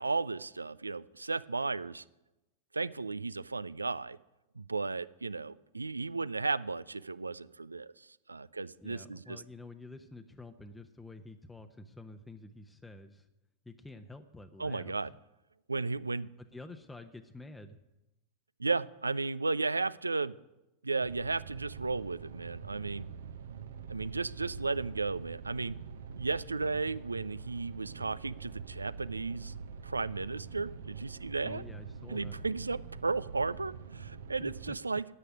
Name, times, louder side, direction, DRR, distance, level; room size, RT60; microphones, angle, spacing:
voice 1, 0.0-2.0 2.7-4.2 4.6-7.9 8.3-9.4 14.6-15.1 15.7-16.3 18.6-20.3 20.8-23.1 23.9-25.8 26.1-29.5 29.8-31.6 32.1-35.1, right 3 dB, 80° right, 19 dB, 0.4 m, -34 dB
voice 2, 8.8-13.2 13.7-15.0 16.5-17.8 31.4-32.4 34.4-34.5, left 2 dB, 5° left, 6 dB, 0.8 m, -49 dB
sound 1, 21.0-34.7, right 6 dB, 60° right, 0.8 m, -45 dB
9.8 x 8.1 x 9.4 m, 0.97 s
figure-of-eight pair, 90°, 0 cm